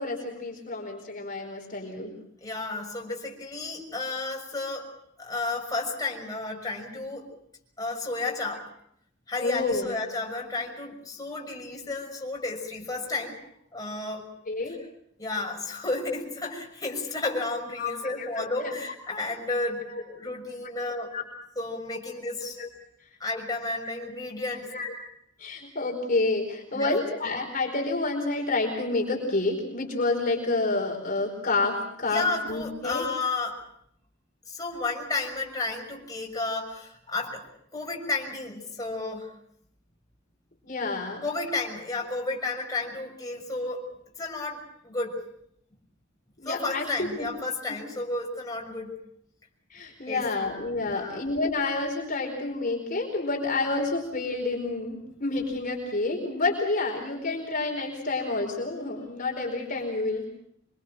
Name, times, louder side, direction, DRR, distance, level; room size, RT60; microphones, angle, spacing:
voice 1, 0.0-2.1 9.4-9.9 14.5-14.8 17.8-18.7 21.1-21.2 22.6-22.7 23.8-23.9 24.7-24.9 25.4-33.0 40.6-41.2 46.4-47.3 47.7-47.8 49.7-60.3, left 3 dB, 45° left, 1 dB, 4.7 m, -29 dB
voice 2, 2.4-4.9 5.2-7.3 7.8-8.7 9.3-13.4 13.7-14.3 15.2-21.1 21.5-22.6 23.2-24.7 26.7-27.0 32.1-33.6 34.5-39.3 41.2-43.9 44.2-45.2 46.4-48.9 50.1-50.3 50.9-51.2, left 3 dB, 20° left, -1 dB, 6.4 m, -32 dB
26.5 x 24.5 x 6.0 m, 0.70 s
head